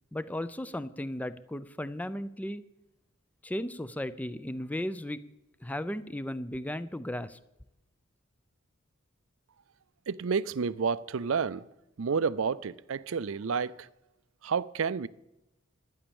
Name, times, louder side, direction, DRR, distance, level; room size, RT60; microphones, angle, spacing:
voice 1, 0.1-2.6 3.4-5.2 5.6-7.4, left 1 dB, 5° left, 0.5 m, -35 dB
voice 2, 10.1-11.7 12.0-13.9 14.4-15.1, right 5 dB, 70° right, 0.5 m, -30 dB
12.0 x 10.0 x 7.0 m
head